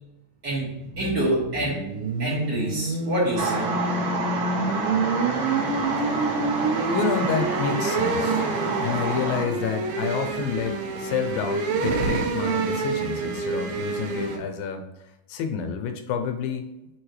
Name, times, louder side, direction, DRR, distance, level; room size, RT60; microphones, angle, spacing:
voice 1, 0.4-1.8 2.2-3.7, right 1 dB, 35° right, -8 dB, 2.3 m, -26 dB
sound 1, 0.7-14.4, right 3 dB, 85° right, 3.0 m, -28 dB
sound 2, 3.4-9.4, right 3 dB, 50° right, 1.6 m, -28 dB
voice 2, 6.9-8.5 8.8-14.9 15.3-16.7, left 6 dB, 85° left, 6 dB, 2.5 m, -29 dB
7.8 x 4.0 x 3.2 m, 0.94 s
omnidirectional pair, 4.0 m